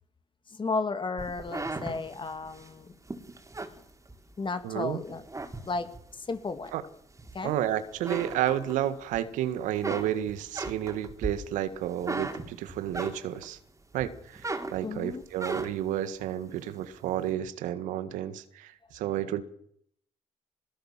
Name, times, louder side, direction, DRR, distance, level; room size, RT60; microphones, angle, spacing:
voice 1, 0.5-3.0 4.4-5.2 5.7-6.7 7.3-7.6 14.8-15.2, left 3 dB, 40° left, 9 dB, 2.7 m, -33 dB
sound 1, 1.2-4.6 5.0-6.1 6.6-7.6 7.9-9.2 9.5-13.6 14.0-16.0, right 2 dB, 25° right, 4.2 m, -37 dB
voice 2, 4.6-5.0 6.7-6.8 7.4-13.6 13.9-19.4, right 12 dB, 80° right, 13 dB, 1.6 m, -31 dB
22.0 x 19.5 x 7.4 m, 0.69 s
hypercardioid pair, 50°, 13 cm